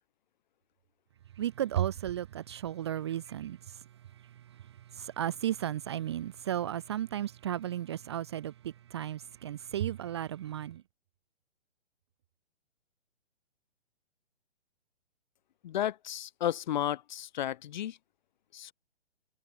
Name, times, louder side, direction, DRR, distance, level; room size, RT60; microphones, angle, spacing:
voice 1, 1.4-3.8 4.9-10.8, right 11 dB, 25° right, 0.6 m, -34 dB
voice 2, 15.6-18.0 18.5-18.7, left 11 dB, 40° left, 1.2 m, -33 dB
hypercardioid pair, 150°, 35 cm